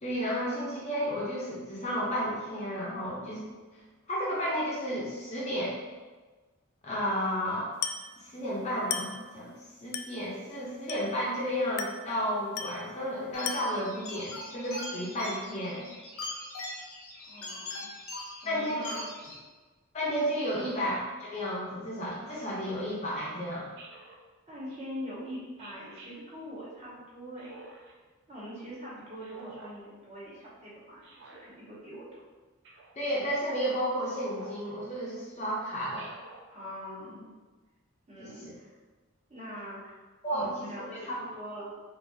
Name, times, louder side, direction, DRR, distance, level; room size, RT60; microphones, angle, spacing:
voice 1, 0.0-3.5 4.1-5.8 6.8-7.7 8.2-15.8 18.4-18.9 19.9-23.7 33.0-36.1 38.2-38.3 40.2-41.2, equal, 30° left, -6 dB, 0.6 m, -32 dB
Glass, 7.8-8.2 8.9-9.3 9.9-10.2 10.9-11.2 11.8-12.1 12.6-12.9 13.5-13.9, left 7 dB, 90° left, 0.3 m, -36 dB
sound 1, 13.3-19.3, left 2 dB, 70° left, 0.7 m, -41 dB
voice 2, 17.2-17.9 18.4-19.4 20.5-20.7 24.5-27.6 28.3-32.2 36.5-37.3 38.1-38.7 39.3-40.0 40.3-41.6, equal, 30° right, -9 dB, 1.1 m, -43 dB
Speech synthesizer, 18.9-19.2 20.4-20.9 22.2-22.6 23.8-24.2 25.6-26.1 27.4-27.9 29.2-29.7 31.0-31.4 32.6-33.0 34.3-34.7 35.9-36.4, right 3 dB, 55° right, 0.5 m, -50 dB
3.8 x 2.6 x 2.6 m, 1.3 s
head